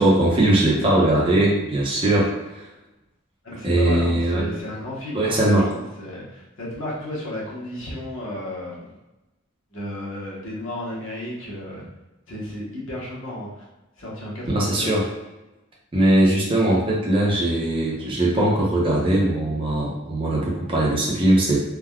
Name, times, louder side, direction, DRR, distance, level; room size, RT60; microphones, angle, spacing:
voice 1, 0.0-2.7 3.6-4.4 5.1-5.7 14.5-15.0 15.9-21.6, right 1 dB, 25° right, -4 dB, 0.6 m, -20 dB
voice 2, 3.4-8.9 9.7-11.9 12.3-13.6 14.0-14.9, left 1 dB, 85° left, -5 dB, 1.0 m, -33 dB
3.5 x 2.2 x 2.3 m, 1.0 s
head